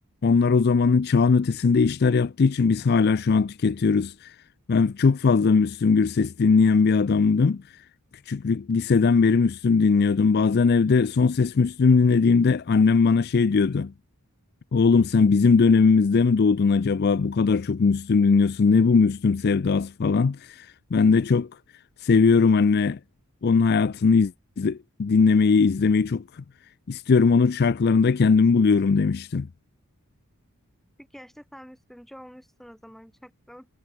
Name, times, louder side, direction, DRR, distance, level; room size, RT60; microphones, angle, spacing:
voice 1, 0.2-4.3 4.7-7.8 8.3-13.9 14.7-21.5 22.0-23.0 23.4-26.4 26.9-29.5, left 4 dB, 45° left, 0.4 m, -20 dB
voice 2, 31.0-33.7, equal, ahead, 5.5 m, -47 dB
head